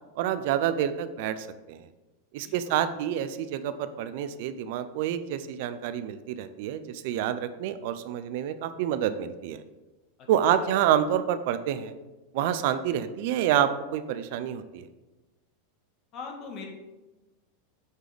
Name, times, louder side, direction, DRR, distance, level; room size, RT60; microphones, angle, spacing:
voice 1, 0.2-1.8 2.3-9.6 10.3-11.9 12.3-14.9, right 10 dB, 60° right, 12 dB, 0.5 m, -28 dB
voice 2, 2.4-2.7 10.6-10.7 16.1-16.7, left 5 dB, 45° left, 2 dB, 1.6 m, -40 dB
8.1 x 3.8 x 5.0 m, 1.1 s
hypercardioid pair, 95°, 0 cm